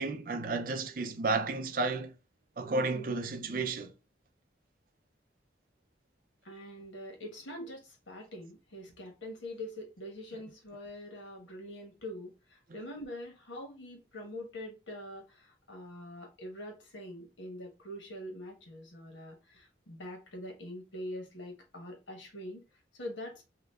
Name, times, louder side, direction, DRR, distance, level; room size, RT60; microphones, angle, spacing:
voice 1, 0.0-2.1 2.6-3.9, right 3 dB, 50° right, 0.4 m, -32 dB
voice 2, 6.4-22.6 22.9-23.4, left 1 dB, 90° left, 1.2 m, -44 dB
2.8 x 2.3 x 3.4 m
head